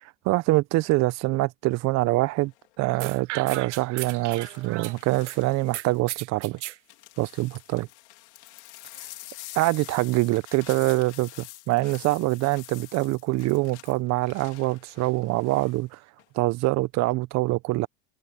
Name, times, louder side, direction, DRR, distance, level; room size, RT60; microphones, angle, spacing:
voice 1, 0.0-2.5 2.8-6.6 7.2-7.9 9.6-16.0 16.3-17.9, right 20 dB, 50° right, 1.1 m, -25 dB
sound 1, 2.4-2.8 4.1-6.0 6.5-15.8 16.2-16.6, left 18 dB, 75° left, 4.9 m, -47 dB
sound 2, 3.0-5.4 5.7-6.8, right 16 dB, 85° right, 0.6 m, -35 dB
hypercardioid pair, 90°, 35 cm